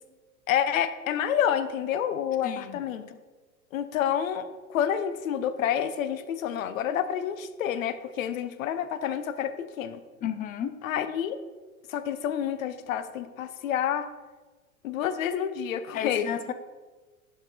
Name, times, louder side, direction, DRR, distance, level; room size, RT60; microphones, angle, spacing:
voice 1, 0.5-3.2 3.7-10.0 10.8-11.4 11.9-14.1 14.8-16.3, left 9 dB, 60° left, 12 dB, 0.9 m, -28 dB
voice 2, 2.4-2.8 10.2-10.8 15.9-16.5, left 9 dB, 20° left, 11 dB, 0.5 m, -32 dB
11.0 x 5.0 x 4.2 m, 1.3 s
figure-of-eight pair, 95°, 45 cm